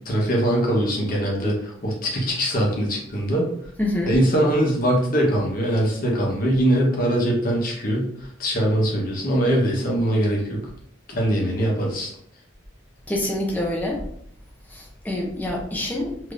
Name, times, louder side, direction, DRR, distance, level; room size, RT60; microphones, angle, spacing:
voice 1, 0.0-3.5 4.1-10.6 11.1-12.1, right 1 dB, 45° left, -2 dB, 0.9 m, -22 dB
voice 2, 3.8-4.1 13.1-14.0 14.7-16.3, left 1 dB, 10° left, -1 dB, 0.5 m, -26 dB
3.4 x 2.8 x 2.4 m, 0.66 s
head